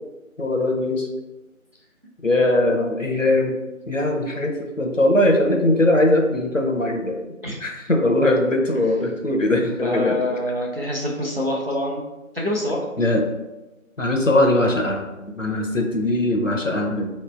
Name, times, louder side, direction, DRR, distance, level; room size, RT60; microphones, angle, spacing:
voice 1, 0.4-1.1 2.2-3.6 3.9-7.2 7.6-10.2 13.0-13.2 14.0-15.1 15.4-17.1, left 1 dB, 65° left, 2 dB, 0.8 m, -20 dB
voice 2, 9.7-12.0 12.3-12.8, left 1 dB, 45° right, -2 dB, 0.9 m, -25 dB
4.4 x 3.3 x 3.3 m, 1.1 s
figure-of-eight pair, 180°, 42 cm